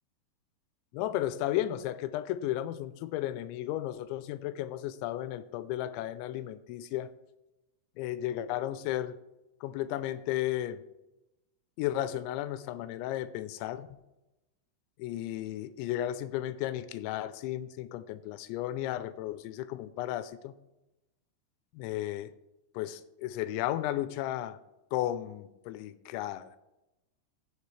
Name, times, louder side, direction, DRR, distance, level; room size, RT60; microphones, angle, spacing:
voice 1, 0.9-7.1 8.0-9.1 9.6-10.8 11.8-13.9 15.0-20.5 21.7-22.3 22.7-24.6 24.9-26.5, left 13 dB, 90° left, 13 dB, 2.9 m, -34 dB
16.0 x 7.8 x 3.2 m, 0.98 s
omnidirectional pair, 5.2 m